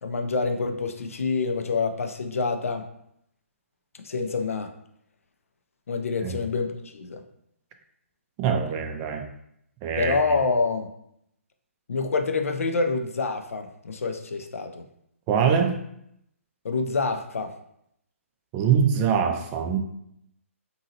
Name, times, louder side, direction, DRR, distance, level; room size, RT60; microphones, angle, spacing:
voice 1, 0.0-2.9 4.0-4.7 5.9-7.2 10.0-10.9 11.9-14.8 16.6-17.5, left 4 dB, 75° left, 6 dB, 0.4 m, -27 dB
voice 2, 8.4-9.3 9.8-10.2 15.3-15.8 18.5-19.8, right 7 dB, 25° right, 5 dB, 0.3 m, -23 dB
2.8 x 2.6 x 2.7 m, 0.75 s
figure-of-eight pair, 135°, 8 cm